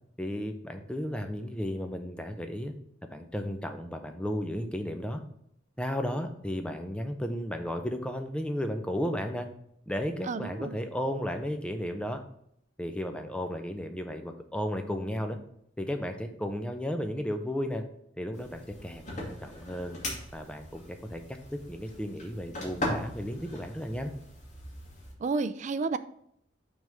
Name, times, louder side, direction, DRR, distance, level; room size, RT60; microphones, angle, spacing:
voice 1, 0.2-2.7 3.1-5.2 5.8-9.5 9.9-12.2 12.8-15.4 15.8-17.8 18.2-20.0 20.3-24.1, equal, 5° left, 6 dB, 0.6 m, -34 dB
voice 2, 10.3-10.7 25.2-26.0, right 4 dB, 40° right, 13 dB, 0.3 m, -30 dB
sound 1, 18.3-25.1, left 1 dB, 40° left, 1.7 m, -39 dB
6.1 x 3.6 x 5.5 m, 0.71 s
head